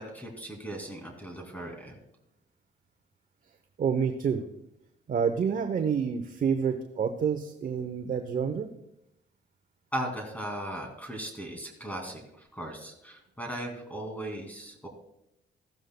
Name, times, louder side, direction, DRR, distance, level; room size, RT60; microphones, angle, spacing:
voice 1, 0.0-2.0 9.9-14.9, right 1 dB, 10° left, 2 dB, 2.3 m, -37 dB
voice 2, 3.8-4.4 5.1-8.7, right 6 dB, 45° right, 7 dB, 0.8 m, -28 dB
14.5 x 12.0 x 2.2 m, 0.82 s
cardioid pair, 90°, 20 cm